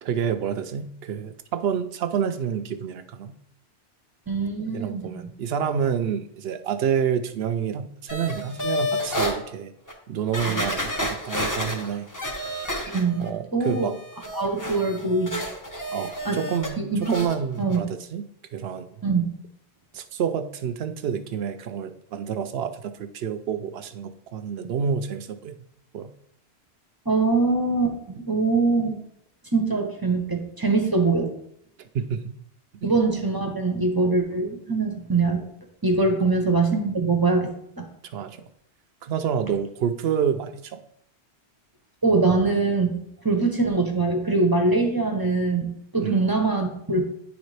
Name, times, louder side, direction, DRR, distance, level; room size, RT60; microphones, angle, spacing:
voice 1, 0.0-3.4 4.6-9.7 10.1-12.1 13.2-13.9 15.9-18.2 18.5-18.9 19.9-25.5 25.9-26.1 31.8-32.3 32.8-32.9 38.1-38.4 39.0-40.8 46.0-46.2, right 7 dB, 70° right, 10 dB, 0.7 m, -28 dB
voice 2, 4.3-5.3 12.9-13.9 14.3-15.4 16.2-16.4 16.8-17.1 17.6-17.8 19.0-19.3 27.1-29.0 29.5-31.3 32.8-35.4 35.8-37.9 42.0-47.0, right 3 dB, 25° right, 3 dB, 0.7 m, -23 dB
sound 1, 8.1-9.3 9.9-10.0 10.3-13.3 13.6-16.7 17.0-17.3 17.7-17.8, left 1 dB, 20° left, 0.8 m, -30 dB
9.5 x 4.0 x 3.2 m, 0.72 s
omnidirectional pair, 1.1 m